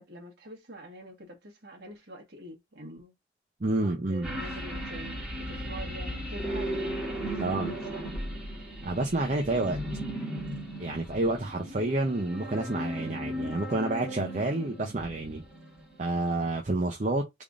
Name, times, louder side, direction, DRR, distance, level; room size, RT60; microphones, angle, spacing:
voice 1, 0.0-3.1 3.8-8.2, equal, 60° right, 1.5 m, -46 dB
voice 2, 3.6-4.3 7.4-7.7 8.8-9.8 10.8-15.4 16.0-17.2, right 2 dB, 40° right, 0.6 m, -29 dB
sound 1, 4.2-16.0 16.4-16.5, equal, 5° right, 2.3 m, -36 dB
3.6 x 3.5 x 2.5 m
head